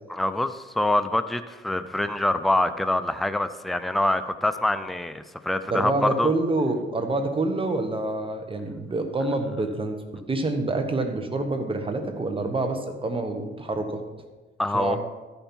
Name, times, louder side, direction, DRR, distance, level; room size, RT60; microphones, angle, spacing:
voice 1, 0.1-6.3 14.6-15.0, left 1 dB, ahead, 10 dB, 0.4 m, -25 dB
voice 2, 5.7-10.0 10.3-14.0 14.7-15.0, right 2 dB, 25° right, 5 dB, 1.2 m, -27 dB
13.0 x 5.4 x 4.5 m, 1.2 s
cardioid pair, 90°, 20 cm